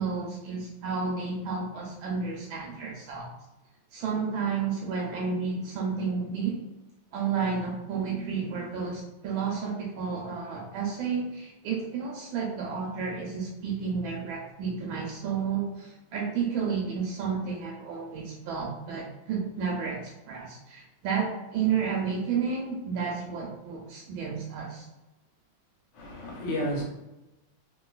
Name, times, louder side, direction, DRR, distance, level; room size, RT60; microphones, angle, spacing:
voice 1, 0.0-3.3 3.9-6.6 7.1-24.9, right 5 dB, 80° right, -2 dB, 1.4 m, -31 dB
voice 2, 25.9-26.8, equal, 70° left, -2 dB, 1.5 m, -31 dB
3.2 x 2.9 x 2.3 m, 0.98 s
omnidirectional pair, 2.2 m